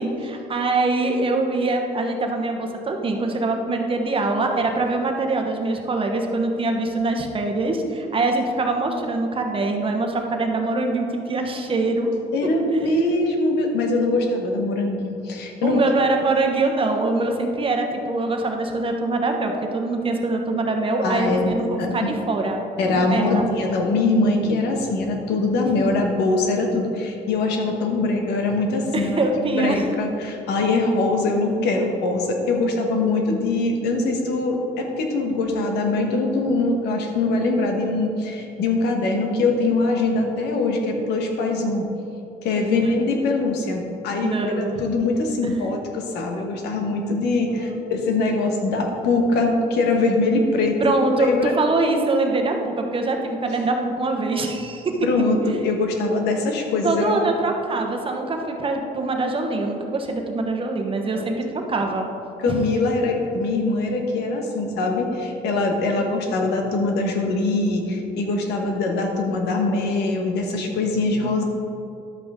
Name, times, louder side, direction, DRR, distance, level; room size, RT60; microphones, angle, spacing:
voice 1, 0.0-12.1 12.7-12.8 15.6-23.4 25.6-25.7 28.9-29.8 42.7-42.9 44.2-44.7 50.8-54.9 56.8-62.1 62.5-62.6, right 2 dB, 30° right, 3 dB, 1.1 m, -23 dB
voice 2, 12.3-15.8 21.0-22.1 22.8-41.8 42.4-50.8 51.2-51.5 55.0-57.2 61.1-61.3 62.4-71.4, left 2 dB, 80° left, 2 dB, 1.4 m, -22 dB
11.5 x 7.8 x 3.7 m, 2.8 s
cardioid pair, 110°, 17 cm